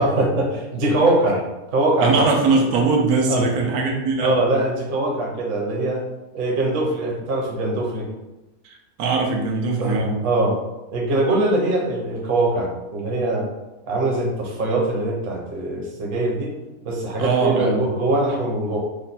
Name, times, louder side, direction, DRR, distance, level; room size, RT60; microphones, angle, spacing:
voice 1, 0.0-2.3 3.3-3.4 4.2-6.0 6.3-8.1 9.8-10.6 10.9-13.5 13.9-16.5 16.8-18.8, right 2 dB, 45° right, -1 dB, 0.8 m, -22 dB
voice 2, 2.0-4.3 8.6-10.2 17.2-17.8, right 4 dB, 90° right, 1 dB, 1.2 m, -21 dB
3.2 x 2.2 x 4.0 m, 1.0 s
omnidirectional pair, 1.6 m